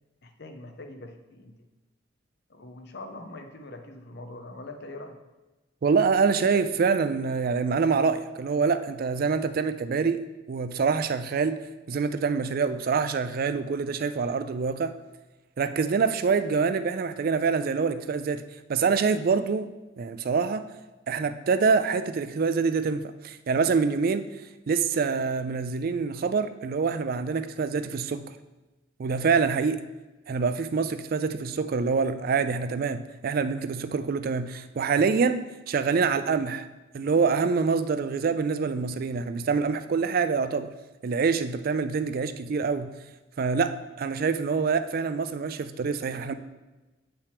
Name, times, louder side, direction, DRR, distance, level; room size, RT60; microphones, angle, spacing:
voice 1, 0.2-1.6 2.5-5.2 42.1-42.2, left 2 dB, 55° left, 6 dB, 0.7 m, -43 dB
voice 2, 5.8-10.2 10.5-11.6 11.9-14.9 15.6-18.4 18.7-19.7 20.0-20.6 21.1-24.2 24.7-28.2 29.0-29.8 30.3-35.4 35.7-36.7 36.9-40.7 41.0-42.9 43.4-46.3, right 5 dB, 50° right, 11 dB, 0.3 m, -25 dB
7.9 x 5.7 x 3.4 m, 1.1 s
head